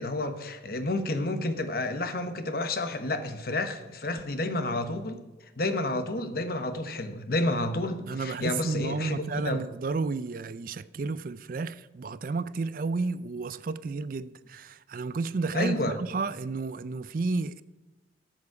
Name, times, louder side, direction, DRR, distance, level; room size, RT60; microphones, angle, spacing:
voice 1, 0.0-5.2 5.6-9.6 15.5-16.0, left 2 dB, 55° left, 1.0 m, -30 dB
voice 2, 8.1-17.6, right 3 dB, 50° right, 0.4 m, -32 dB
12.5 x 7.2 x 4.8 m
head